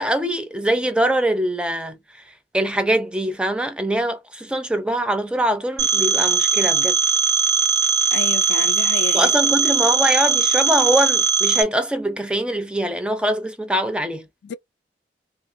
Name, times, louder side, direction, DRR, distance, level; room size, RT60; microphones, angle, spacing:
voice 1, 0.0-2.0 2.5-7.0 9.1-14.3, right 1 dB, 5° right, 0.4 m, -23 dB
Telephone, 5.8-11.6, right 6 dB, 70° right, 0.8 m, -19 dB
voice 2, 8.1-9.3 14.4-14.5, left 5 dB, 75° left, 0.3 m, -30 dB
2.9 x 2.5 x 2.5 m
head